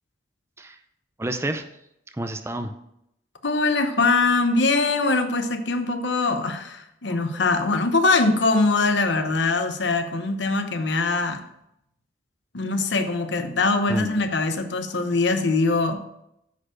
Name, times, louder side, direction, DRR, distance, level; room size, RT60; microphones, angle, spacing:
voice 1, 1.2-1.7 2.1-2.7 7.1-7.4 13.9-14.1 15.1-15.2, right 1 dB, 15° right, 7 dB, 0.5 m, -30 dB
voice 2, 3.4-11.4 12.5-16.0, left 3 dB, 80° left, 8 dB, 0.9 m, -22 dB
9.6 x 4.4 x 6.1 m, 0.80 s
head